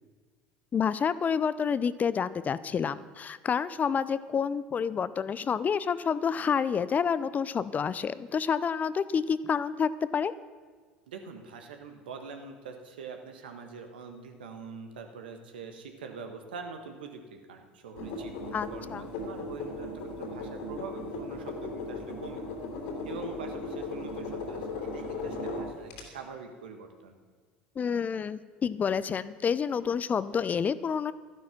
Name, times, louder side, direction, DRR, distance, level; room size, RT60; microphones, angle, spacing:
voice 1, 0.7-10.3 18.5-19.1 27.8-31.1, left 6 dB, 30° left, 16 dB, 0.6 m, -29 dB
voice 2, 11.1-22.4 23.0-27.1, right 5 dB, 80° right, 5 dB, 1.5 m, -44 dB
sound 1, 18.0-26.0, left 3 dB, 70° left, 3.2 m, -37 dB
12.5 x 11.5 x 6.0 m, 1.5 s
hypercardioid pair, 75°, 5 cm